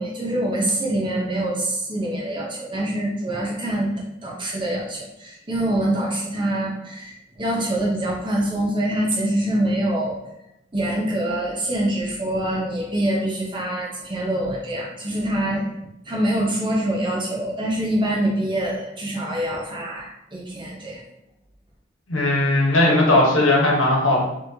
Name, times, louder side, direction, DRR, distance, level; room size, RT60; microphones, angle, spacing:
voice 1, 0.0-3.9 4.2-10.2 10.7-15.7 16.0-21.0, right 1 dB, 25° right, -3 dB, 0.7 m, -25 dB
voice 2, 22.1-24.2, left 2 dB, 85° left, -2 dB, 1.0 m, -18 dB
3.9 x 3.0 x 2.8 m, 0.84 s
head